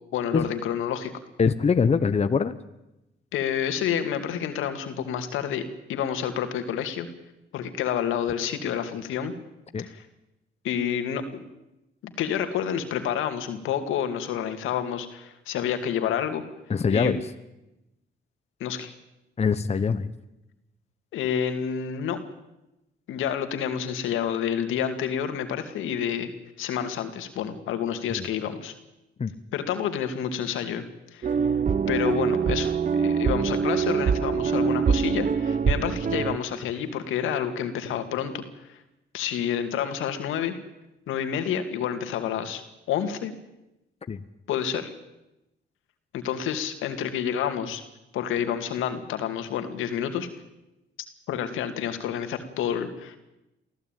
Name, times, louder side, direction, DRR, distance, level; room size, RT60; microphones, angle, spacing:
voice 1, 0.1-1.1 3.3-7.1 7.5-9.3 9.8-10.0 10.6-11.2 12.0-16.4 16.9-17.1 18.6-18.9 21.1-22.2 23.1-26.3 26.6-28.7 29.5-30.8 31.1-31.4 31.9-38.8 39.1-40.5 41.1-42.6 42.9-43.3 44.5-44.9 46.1-47.8 48.1-50.3 51.3-53.2, left 9 dB, 85° left, 8 dB, 2.4 m, -29 dB
voice 2, 1.4-2.6 9.7-9.9 16.7-17.2 19.4-20.1 28.2-28.3 29.2-29.3 44.1-44.2, left 5 dB, 30° left, 11 dB, 1.0 m, -23 dB
sound 1, 31.2-36.4, right 6 dB, 40° right, 1.0 m, -24 dB
24.0 x 15.5 x 9.2 m, 0.95 s
cardioid pair, 90°, 20 cm